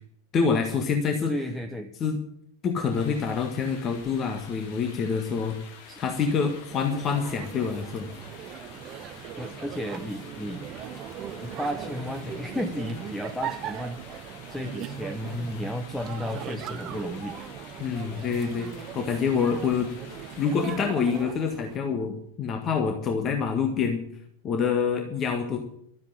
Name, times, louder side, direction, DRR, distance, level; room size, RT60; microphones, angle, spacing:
voice 1, 0.3-1.3 2.0-2.2 2.6-5.6 6.0-8.1 17.8-18.7 18.9-19.9 20.4-24.0 24.4-25.6, left 6 dB, 30° left, 4 dB, 1.7 m, -26 dB
voice 2, 1.3-1.9 5.9-6.2 9.4-10.7 11.4-17.4, left 1 dB, 5° left, 7 dB, 0.9 m, -33 dB
sound 1, 2.9-20.9, left 6 dB, 50° left, 2.4 m, -48 dB
sound 2, 6.7-21.8, right 9 dB, 35° right, 0.9 m, -39 dB
12.5 x 9.3 x 7.8 m, 0.67 s
figure-of-eight pair, 90°, 0 cm